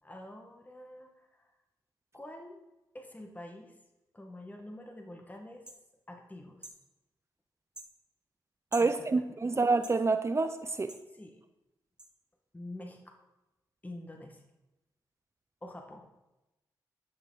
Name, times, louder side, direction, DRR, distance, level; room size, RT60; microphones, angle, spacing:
voice 1, 0.0-1.5 2.1-2.6 2.9-3.8 4.1-5.7 6.1-6.7 8.8-9.6 11.1-11.4 12.5-13.2 13.8-14.4 15.6-16.1, left 1 dB, 20° left, 3 dB, 1.8 m, -47 dB
sound 1, 5.7-5.8 6.6-6.8 7.7-7.9 8.7-8.9 9.8-10.0 10.9-11.0 12.0-12.1, right 1 dB, 10° right, 1.7 m, -46 dB
voice 2, 8.7-11.0, right 3 dB, 35° right, 10 dB, 0.7 m, -28 dB
12.0 x 6.4 x 4.1 m, 0.99 s
cardioid pair, 50°, 8 cm